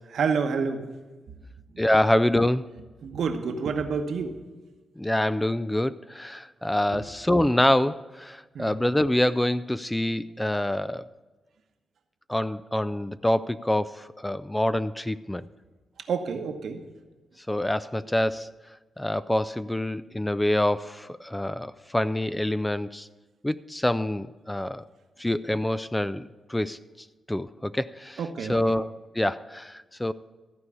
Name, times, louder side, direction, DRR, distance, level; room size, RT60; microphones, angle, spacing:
voice 1, 0.1-0.8 1.3-1.4 1.7-1.8 3.0-4.4 6.9-7.0 8.5-8.7 16.1-16.8 28.2-28.6, right 5 dB, 75° right, 6 dB, 1.1 m, -28 dB
voice 2, 1.8-2.6 5.0-11.1 12.3-15.5 17.5-18.5 19.0-23.1 23.4-24.8 25.2-26.8 27.3-28.2 28.5-30.1, left 1 dB, 10° left, 16 dB, 0.3 m, -26 dB
14.0 x 4.8 x 8.4 m, 1.2 s
cardioid pair, 90°, 0 cm